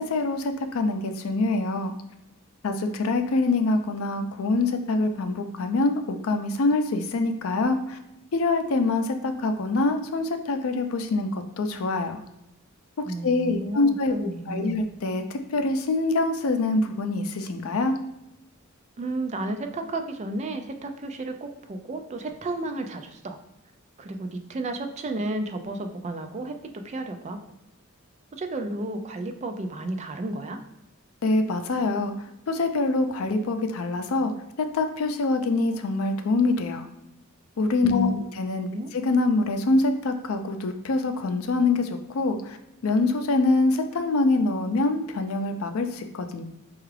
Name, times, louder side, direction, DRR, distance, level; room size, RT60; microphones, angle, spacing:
voice 1, 0.0-1.9 2.6-8.0 8.3-12.2 13.2-18.0 31.2-32.1 32.5-34.3 34.6-36.8 37.6-38.7 39.0-42.6 42.8-46.4, left 3 dB, 80° left, 7 dB, 0.4 m, -25 dB
voice 2, 13.0-14.8 19.0-23.4 24.0-26.6 26.8-27.4 28.3-30.6 37.8-38.2 38.7-38.9, right 1 dB, 30° right, 6 dB, 0.4 m, -32 dB
4.6 x 2.4 x 3.2 m, 0.90 s
head